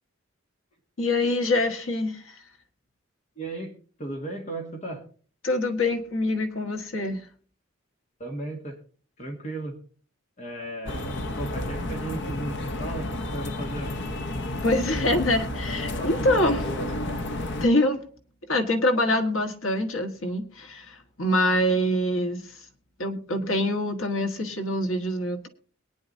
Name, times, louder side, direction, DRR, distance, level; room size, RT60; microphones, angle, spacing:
voice 1, 1.0-2.4 5.4-7.2 14.6-16.6 17.6-18.0 18.5-22.6 23.0-25.5, left 1 dB, 80° left, 5 dB, 1.6 m, -25 dB
voice 2, 3.4-5.1 8.2-8.8 9.2-9.8 10.4-14.0 16.0-17.2, right 1 dB, 35° left, 1 dB, 1.8 m, -36 dB
sound 1, 10.9-17.7, left 1 dB, 60° left, 1.0 m, -31 dB
22.5 x 9.7 x 2.7 m, 0.41 s
head